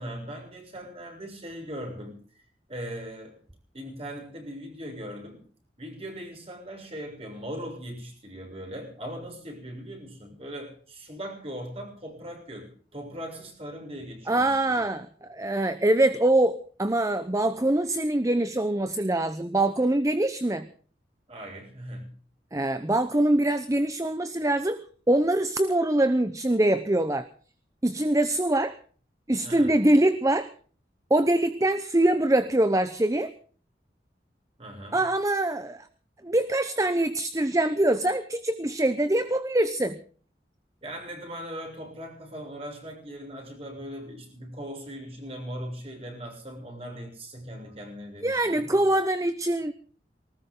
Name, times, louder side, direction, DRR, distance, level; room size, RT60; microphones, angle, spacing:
voice 1, 0.0-2.2 2.7-3.4 3.7-5.4 5.8-14.9 21.3-22.2 29.4-29.7 34.6-35.0 40.8-48.8, equal, 35° right, 2 dB, 7.0 m, -39 dB
voice 2, 14.3-20.7 22.5-24.8 25.1-27.3 27.8-28.8 29.3-30.5 31.1-33.3 34.9-35.9 36.2-40.0 48.2-49.7, right 1 dB, 20° right, 12 dB, 0.8 m, -24 dB
19.5 x 19.0 x 3.8 m, 0.43 s
head